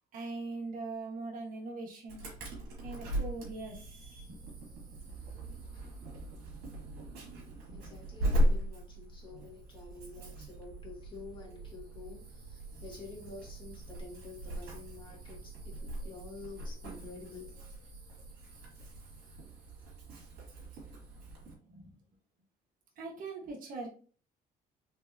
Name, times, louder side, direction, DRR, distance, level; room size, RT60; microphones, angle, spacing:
voice 1, 0.1-2.2 2.8-4.2 21.6-22.0 23.0-23.9, right 3 dB, 55° right, 0 dB, 1.3 m, -41 dB
Insect / Alarm, 2.1-21.5, equal, 80° right, 2.0 m, -38 dB
voice 2, 7.7-17.6, left 4 dB, 30° left, -3 dB, 2.0 m, -49 dB
4.6 x 3.4 x 2.7 m, 0.41 s
cardioid pair, 110°, 17 cm